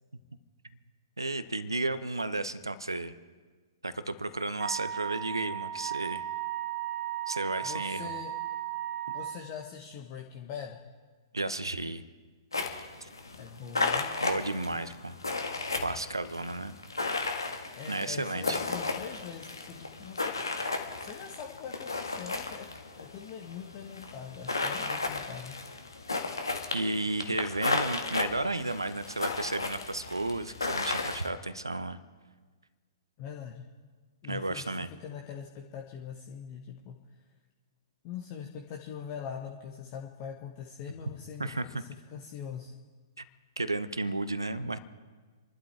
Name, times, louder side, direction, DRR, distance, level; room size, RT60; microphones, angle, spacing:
voice 1, 1.2-3.1 3.8-6.2 7.3-8.1 11.3-12.0 13.0-13.1 14.2-15.2 15.8-16.7 17.9-18.6 26.7-32.0 34.3-34.9 41.4-41.8 43.2-43.3 43.6-44.8, right 2 dB, 80° right, 14 dB, 0.9 m, -33 dB
Wind instrument woodwind instrument, 4.6-9.4, right 12 dB, 35° right, 1.2 m, -36 dB
voice 2, 7.6-8.3 9.1-10.8 13.4-14.1 17.8-20.7 21.0-22.7 23.0-25.5 33.2-33.7 34.2-34.7 35.0-37.0 38.0-42.8, left 7 dB, 35° left, 1 dB, 1.2 m, -42 dB
sound 1, 12.5-31.3, left 3 dB, 75° left, 1.6 m, -34 dB
29.0 x 12.0 x 3.4 m, 1.4 s
figure-of-eight pair, 115°, 2 cm